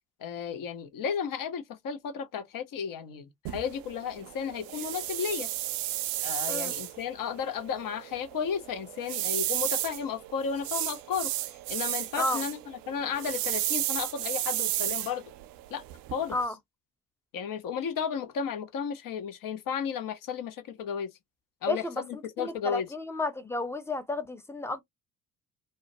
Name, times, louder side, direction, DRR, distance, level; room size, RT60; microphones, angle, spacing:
voice 1, 0.2-5.5 6.2-11.3 11.7-15.2 15.7-15.8 16.1-16.3 17.3-21.1 21.6-22.9, left 7 dB, 50° left, 0.8 m, -33 dB
sound 1, 3.4-16.4, right 14 dB, 55° right, 0.5 m, -33 dB
voice 2, 21.7-24.8, left 2 dB, 5° left, 0.6 m, -32 dB
2.4 x 2.1 x 2.6 m
hypercardioid pair, 50°, 43 cm